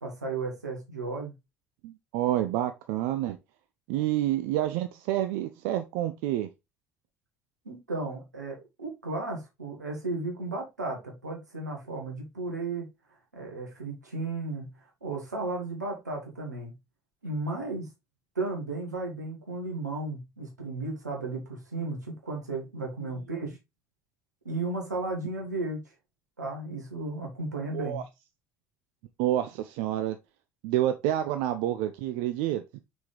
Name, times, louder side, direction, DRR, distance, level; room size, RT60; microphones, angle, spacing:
voice 1, 0.0-1.3 3.9-4.0 7.7-12.9 13.3-14.7 15.0-16.7 17.2-17.9 18.4-23.6 24.4-25.9 26.4-28.0, right 3 dB, 85° right, 2.0 m, -34 dB
voice 2, 1.8-3.4 3.9-6.5 27.7-28.0 29.2-30.2 30.6-32.6, right 13 dB, 60° right, 0.5 m, -28 dB
5.9 x 4.9 x 3.3 m
figure-of-eight pair, 55°, 9 cm